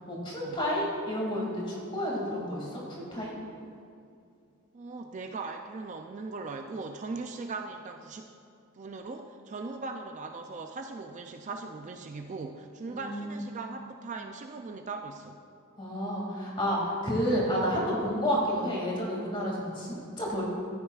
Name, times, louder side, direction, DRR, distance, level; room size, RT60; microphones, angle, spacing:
voice 1, 0.1-3.3 12.9-13.4 15.8-20.4, equal, 25° left, -3 dB, 2.3 m, -30 dB
voice 2, 4.7-8.3 8.7-15.4, right 3 dB, 35° right, 4 dB, 0.4 m, -39 dB
13.5 x 8.9 x 2.4 m, 2.5 s
head